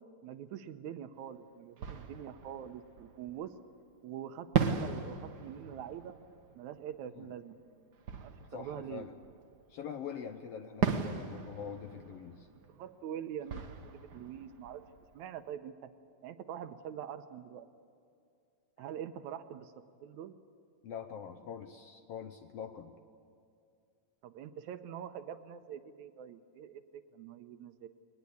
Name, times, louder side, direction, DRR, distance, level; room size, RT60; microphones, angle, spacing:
voice 1, 0.2-3.5 4.0-6.2 6.6-7.6 8.2-9.1 12.7-13.6 13.9-14.8 15.1-15.9 16.2-17.7 18.8-19.7 20.0-20.4 24.2-27.9, right 9 dB, 75° right, 10 dB, 2.0 m, -44 dB
Fireworks, 1.2-1.3 1.8-3.7 4.5-9.9 10.8-15.5, right 6 dB, 60° right, 1.1 m, -38 dB
voice 2, 8.5-9.1 9.7-12.5 18.8-18.9 20.8-22.9, left 7 dB, 70° left, 7 dB, 1.5 m, -44 dB
21.0 x 20.0 x 8.4 m, 2.5 s
omnidirectional pair, 3.6 m